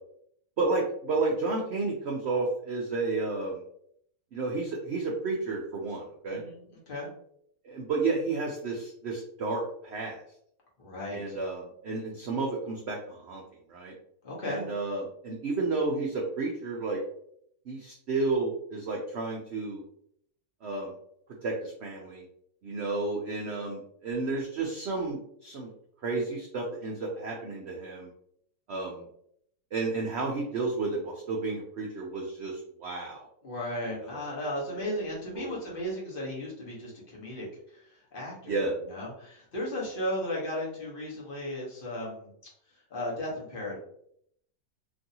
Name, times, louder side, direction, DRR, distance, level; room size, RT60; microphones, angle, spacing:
voice 1, 0.6-3.6 4.3-6.4 7.6-10.2 11.1-13.4 13.7-13.9 14.4-17.0 17.7-19.8 20.6-20.9 21.4-22.2 22.6-25.7 26.0-28.1 28.7-29.0 29.7-33.3 34.0-34.2 34.7-35.0 35.4-35.8 38.5-38.7, right 3 dB, 90° right, -1 dB, 0.5 m, -31 dB
voice 2, 6.3-7.1 10.8-11.4 14.2-14.6 33.4-37.5 37.7-38.6 38.9-42.3 42.9-43.8, left 1 dB, 40° left, -4 dB, 1.0 m, -35 dB
3.0 x 2.6 x 2.7 m, 0.69 s
omnidirectional pair, 1.8 m